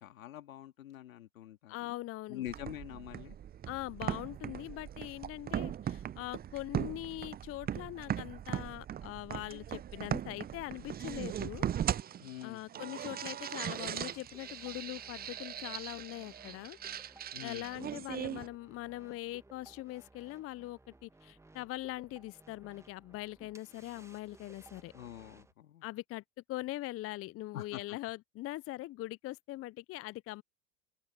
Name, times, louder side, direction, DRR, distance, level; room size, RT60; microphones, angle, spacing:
voice 1, 0.0-2.0 2.3-3.4 12.1-13.0 17.3-17.9 24.9-25.9 27.5-28.0, left 12 dB, 80° left, 2.8 m, -46 dB
voice 2, 1.7-2.5 3.7-11.7 12.4-16.8 17.4-24.9 25.8-26.2 26.5-30.4, left 17 dB, 35° left, 0.7 m, -42 dB
sound 1, 2.5-18.5, right 10 dB, 25° right, 0.7 m, -39 dB
sound 2, 13.7-25.5, right 2 dB, 5° right, 1.6 m, -59 dB
open air
hypercardioid pair, 85°, 41 cm